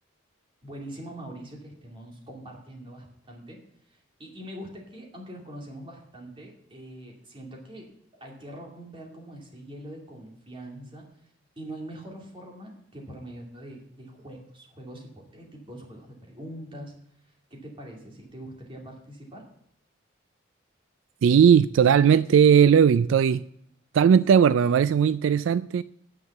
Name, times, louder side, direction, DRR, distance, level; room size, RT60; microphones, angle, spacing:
voice 1, 0.6-3.6 3.9-7.9 8.2-11.1 11.6-16.9 17.2-19.4, right 1 dB, 25° right, 2.5 m, -43 dB
voice 2, 21.2-23.4 23.9-25.8, right 7 dB, 75° right, 0.3 m, -18 dB
9.4 x 7.3 x 7.1 m
head